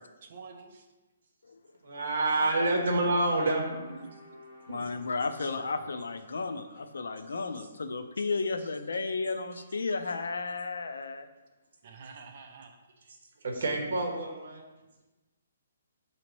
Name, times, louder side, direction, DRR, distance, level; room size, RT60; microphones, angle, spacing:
voice 1, 0.2-0.9 3.7-4.1 4.7-5.0 5.5-5.7 11.8-12.8, right 4 dB, 35° right, 5 dB, 0.4 m, -47 dB
voice 2, 1.8-3.7 5.4-5.5 7.6-7.7 13.4-14.7, right 2 dB, 55° right, 1 dB, 0.8 m, -28 dB
sound 1, 2.0-8.2, left 1 dB, 10° right, 0.8 m, -55 dB
voice 3, 4.7-11.3, left 4 dB, 90° left, 8 dB, 0.4 m, -33 dB
5.9 x 2.8 x 3.0 m, 1.1 s
hypercardioid pair, 180°, 0 cm